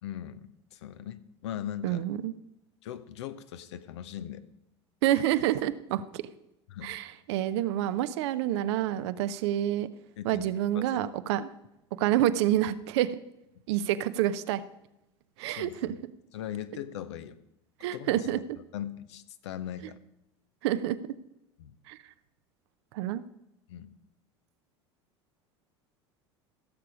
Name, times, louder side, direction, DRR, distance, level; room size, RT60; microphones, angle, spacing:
voice 1, 0.0-2.1 2.8-4.4 6.7-6.9 10.2-10.5 10.7-11.0 15.5-16.0 16.3-17.4 17.9-18.4 18.7-20.0 21.6-21.8 23.7-23.9, left 10 dB, 75° left, 12 dB, 0.8 m, -40 dB
voice 2, 1.8-2.3 5.0-6.2 6.8-9.9 10.2-11.5 12.0-13.2 13.7-14.6 15.4-15.9 17.8-18.4 20.6-21.0 21.9-22.0 22.9-23.2, right 12 dB, 70° right, 13 dB, 0.7 m, -28 dB
16.0 x 6.8 x 4.9 m, 0.88 s
hypercardioid pair, 80°, 15 cm